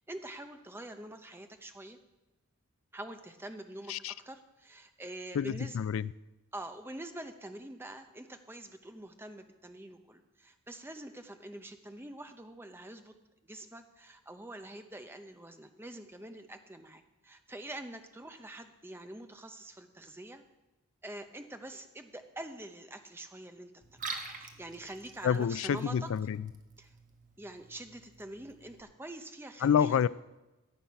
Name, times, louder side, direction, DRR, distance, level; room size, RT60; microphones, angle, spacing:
voice 1, 0.1-2.0 2.9-5.8 6.5-13.1 13.5-20.5 21.0-23.8 24.4-26.1 26.8-26.9 27.4-30.0, right 1 dB, 10° right, 0.7 m, -45 dB
voice 2, 5.3-6.1 25.2-26.5 29.6-30.1, left 8 dB, 65° left, 0.3 m, -28 dB
Liquid, 23.8-28.8, right 4 dB, 35° right, 1.2 m, -46 dB
14.0 x 7.9 x 5.8 m
head